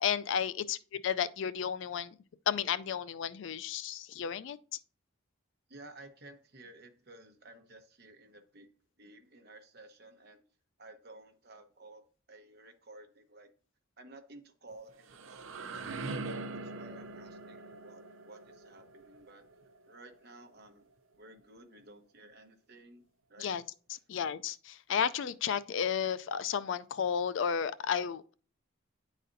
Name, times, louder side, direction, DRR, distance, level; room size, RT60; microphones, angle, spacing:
voice 1, 0.0-2.1 2.5-4.6 23.4-23.6 23.9-28.3, left 7 dB, 65° left, 0.3 m, -33 dB
voice 2, 5.7-8.7 9.0-10.4 10.8-12.0 12.3-13.5 14.0-16.1 16.5-19.4 19.9-20.9 21.2-23.0 23.3-23.5, right 2 dB, 50° right, 0.9 m, -54 dB
sound 1, 14.7-20.5, right 3 dB, 70° right, 0.5 m, -43 dB
10.0 x 4.1 x 2.6 m
head